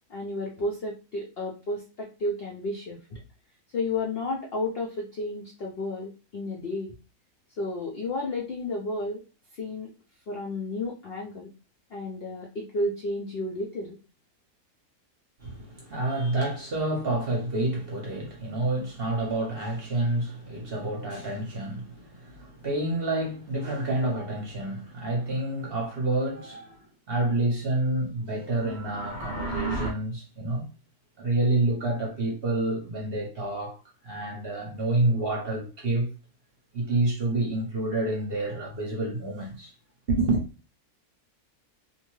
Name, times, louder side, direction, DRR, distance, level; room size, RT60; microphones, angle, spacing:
voice 1, 0.1-3.2 3.7-6.9 7.6-9.2 9.5-9.9 10.3-11.5 11.9-14.0, left 2 dB, 65° left, 0.6 m, -32 dB
voice 2, 15.4-26.8 27.1-30.7 31.2-33.8 34.0-36.1 36.7-39.7 40.1-40.4, right 2 dB, 45° right, 0.8 m, -28 dB
sound 1, 28.5-29.9, right 3 dB, 5° right, 0.9 m, -33 dB
2.7 x 2.1 x 3.0 m
omnidirectional pair, 1.6 m